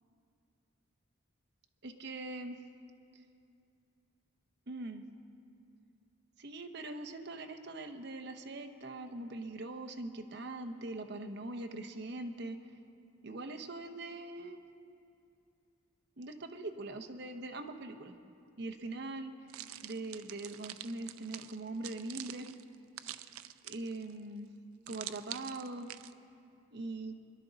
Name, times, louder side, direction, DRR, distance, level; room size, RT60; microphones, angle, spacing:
voice 1, 1.8-2.6 4.7-5.1 6.4-12.6 13.2-14.6 16.2-18.1 18.6-19.3 19.8-22.5 23.0-23.2 23.6-24.5 24.9-25.9 26.7-27.2, right 2 dB, 50° right, 6 dB, 0.8 m, -42 dB
sound 1, 19.5-24.1 24.9-26.1, right 13 dB, 90° right, 0.4 m, -46 dB
22.0 x 11.5 x 4.0 m, 2.5 s
head